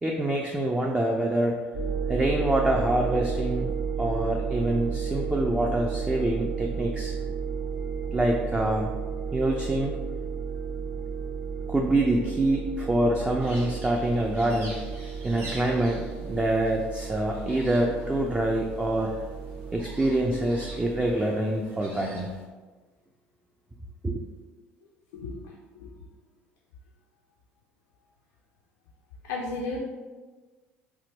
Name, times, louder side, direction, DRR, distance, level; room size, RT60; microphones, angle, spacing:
voice 1, 0.0-1.6 2.1-3.7 4.0-7.1 8.1-8.9 9.3-9.9 11.7-14.8 15.2-19.1 19.7-22.3 24.0-24.2, right 1 dB, 15° right, 0 dB, 0.3 m, -26 dB
sound 1, 1.7-21.1, right 6 dB, 85° right, 0.9 m, -33 dB
sound 2, 13.4-22.5, right 1 dB, 45° right, 1.0 m, -47 dB
voice 2, 29.2-29.8, left 3 dB, 80° left, -1 dB, 0.4 m, -33 dB
3.4 x 2.1 x 2.9 m, 1.3 s
hypercardioid pair, 65°, 6 cm